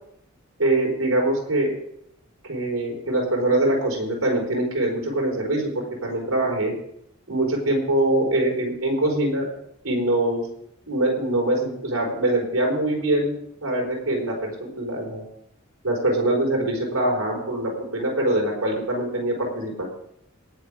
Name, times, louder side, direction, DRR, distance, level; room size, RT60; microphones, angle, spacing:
voice 1, 0.6-1.7 2.4-6.7 7.3-9.5 9.8-10.5 10.9-13.3 13.6-15.2 15.8-19.9, right 1 dB, 85° right, 0 dB, 4.1 m, -23 dB
19.0 x 7.0 x 5.0 m, 0.74 s
head